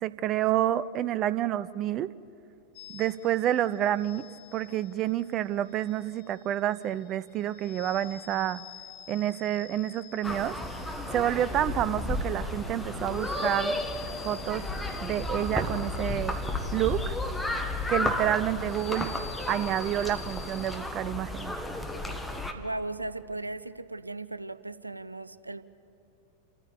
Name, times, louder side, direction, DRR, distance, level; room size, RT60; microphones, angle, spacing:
voice 1, 0.0-2.1 2.9-4.3 4.5-8.6 9.1-10.6 11.1-13.8 14.2-14.6 15.0-16.4 16.7-17.2 17.9-19.1 19.5-21.6, right 12 dB, 35° right, 17 dB, 0.4 m, -29 dB
sound 1, 2.7-20.8, left 9 dB, 50° left, 1.5 m, -50 dB
sound 2, 10.2-22.5, left 1 dB, 5° left, 1.5 m, -33 dB
sound 3, 10.6-17.6, equal, 75° left, 3.4 m, -50 dB
voice 2, 22.6-25.6, right 2 dB, 85° right, 15 dB, 0.5 m, -37 dB
28.5 x 14.0 x 7.0 m, 2.8 s
figure-of-eight pair, 90°, 0 cm